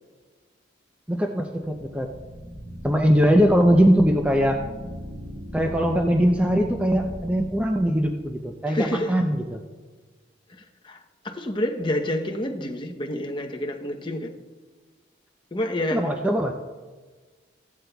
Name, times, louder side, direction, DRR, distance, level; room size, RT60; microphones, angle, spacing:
voice 1, 1.1-2.1 2.8-4.6 5.5-9.6 15.9-16.5, equal, 5° right, 0.5 m, -21 dB
sound 1, 1.8-8.6, equal, 90° right, 2.1 m, -38 dB
voice 2, 8.7-9.2 10.5-14.3 15.5-16.1, left 1 dB, 25° left, 0.8 m, -29 dB
15.5 x 11.5 x 2.3 m
head